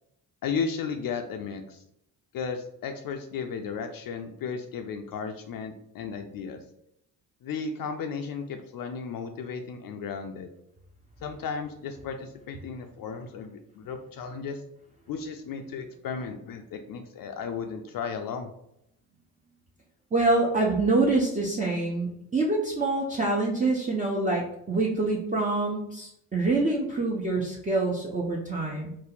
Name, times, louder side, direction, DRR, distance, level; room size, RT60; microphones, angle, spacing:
voice 1, 0.4-1.8 2.3-6.6 7.4-10.5 11.2-14.6 15.1-18.5, left 5 dB, 50° left, 5 dB, 0.5 m, -34 dB
voice 2, 20.1-28.9, right 2 dB, 15° right, -3 dB, 0.6 m, -26 dB
2.6 x 2.0 x 3.8 m, 0.77 s
hypercardioid pair, 40°, 47 cm